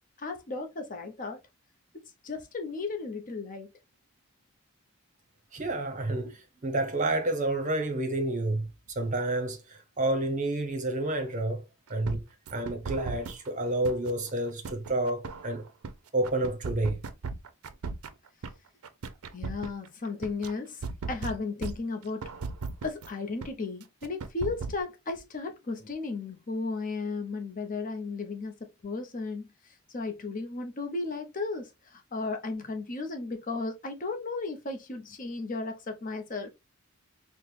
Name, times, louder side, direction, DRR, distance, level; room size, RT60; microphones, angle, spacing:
voice 1, 0.2-1.4 2.2-3.7 6.1-6.3 19.3-22.3 22.8-36.5, left 3 dB, 40° left, 0.7 m, -35 dB
voice 2, 5.5-8.7 9.0-11.6 11.9-12.2 12.5-15.6 16.1-17.0, right 2 dB, 35° right, 0.7 m, -29 dB
sound 1, 12.0-13.5 13.8-15.9 16.2-18.5 18.8-20.5 20.8-23.1 23.4-23.5 23.8-24.8, right 4 dB, 85° right, 0.5 m, -36 dB
4.3 x 2.1 x 3.2 m
head